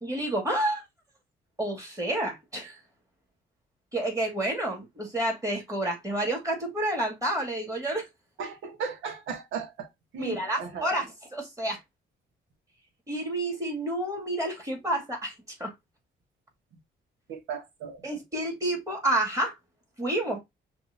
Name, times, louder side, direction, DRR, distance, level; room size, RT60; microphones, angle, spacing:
voice 1, 0.0-0.8 1.6-2.8 3.9-8.1 10.2-11.8 13.1-15.3 15.6-15.7 18.0-19.5 20.0-20.4, right 1 dB, 15° right, 2.2 m, -29 dB
voice 2, 8.4-9.9 10.1-10.9 17.3-18.0, right 6 dB, 80° right, 1.2 m, -36 dB
5.9 x 2.7 x 2.6 m
cardioid pair, 90°, 20 cm